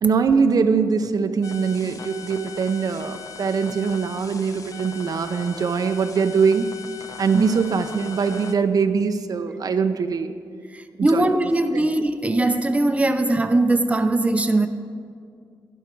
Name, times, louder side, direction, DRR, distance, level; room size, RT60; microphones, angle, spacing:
voice 1, 0.0-6.7 7.2-10.3 11.1-11.2 11.7-11.8, right 5 dB, 55° right, 0.6 m, -22 dB
sound 1, 1.4-8.5, left 6 dB, 50° left, 0.8 m, -39 dB
voice 2, 10.7-14.7, right 2 dB, 15° right, 0.7 m, -20 dB
12.0 x 11.5 x 4.6 m
cardioid pair, 80°, 8 cm